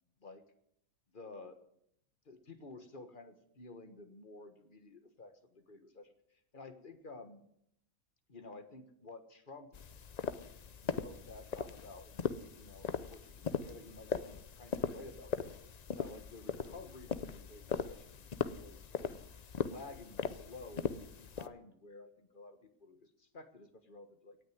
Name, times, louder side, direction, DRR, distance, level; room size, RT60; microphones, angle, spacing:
voice 1, 1.1-1.6 2.2-6.1 6.5-7.4 8.3-9.7 10.3-10.5 10.8-12.2 12.6-15.6 15.9-18.2 18.6-19.2 19.5-24.4, left 3 dB, 35° left, 9 dB, 1.5 m, -52 dB
sound 1, 9.7-21.5, left 6 dB, 55° left, 0.4 m, -39 dB
17.5 x 6.4 x 9.5 m, 0.73 s
omnidirectional pair, 1.5 m